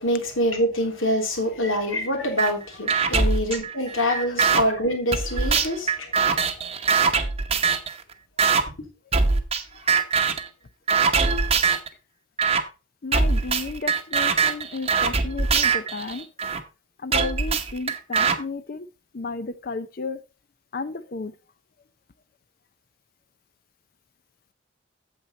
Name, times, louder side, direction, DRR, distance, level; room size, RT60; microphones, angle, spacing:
voice 1, 0.0-6.1, equal, 85° left, 3.2 m, -25 dB
sound 1, 2.4-2.5 2.9-4.6 5.1-7.9 8.4-8.6 9.1-9.6 9.9-10.5 10.9-11.9 12.4-12.6 13.1-16.6 17.1-18.4, right 5 dB, 30° right, 0.9 m, -22 dB
voice 2, 13.0-16.3 17.0-18.9 19.1-20.2 20.7-21.3, left 3 dB, 45° left, 0.5 m, -33 dB
8.8 x 7.5 x 4.1 m
head